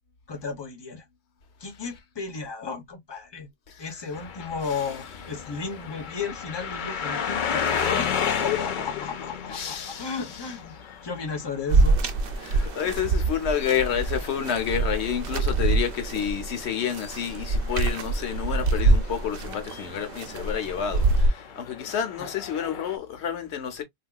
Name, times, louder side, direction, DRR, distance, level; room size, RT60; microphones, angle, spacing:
voice 1, 0.3-1.1 1.6-3.5 3.8-10.8 11.0-12.0 22.2-22.3, left 5 dB, 25° left, 0.9 m, -34 dB
sound 1, 4.1-23.0, left 7 dB, 55° left, 0.7 m, -35 dB
voice 2, 9.5-10.2 12.4-23.8, left 8 dB, 85° left, 1.1 m, -29 dB
sound 2, 11.7-21.3, right 3 dB, 65° right, 0.8 m, -25 dB
3.5 x 2.8 x 2.2 m
omnidirectional pair, 1.1 m